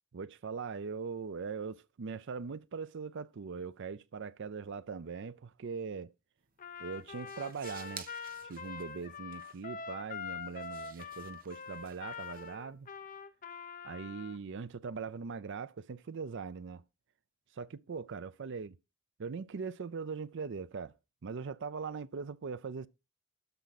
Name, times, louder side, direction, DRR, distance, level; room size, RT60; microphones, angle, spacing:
voice 1, 0.1-6.1 6.8-8.1 8.4-12.9 13.8-16.8 17.6-18.7 19.2-20.9 21.2-22.9, right 5 dB, 60° right, 0.5 m, -41 dB
sound 1, 6.4-13.2, right 7 dB, 40° right, 0.9 m, -54 dB
Trumpet, 6.6-14.4, left 6 dB, 40° left, 0.7 m, -44 dB
12.5 x 4.6 x 4.1 m
head